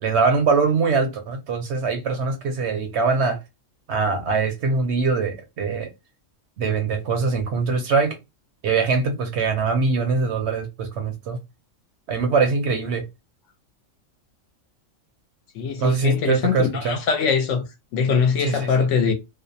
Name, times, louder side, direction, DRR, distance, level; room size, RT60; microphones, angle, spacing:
voice 1, 0.0-3.4 3.9-5.9 6.6-8.2 8.6-11.4 12.1-13.0 15.8-17.0 18.4-18.9, right 4 dB, 65° right, 0.8 m, -22 dB
voice 2, 15.5-17.6 17.9-19.1, left 6 dB, 70° left, 0.9 m, -22 dB
2.5 x 2.0 x 2.5 m
omnidirectional pair, 1.4 m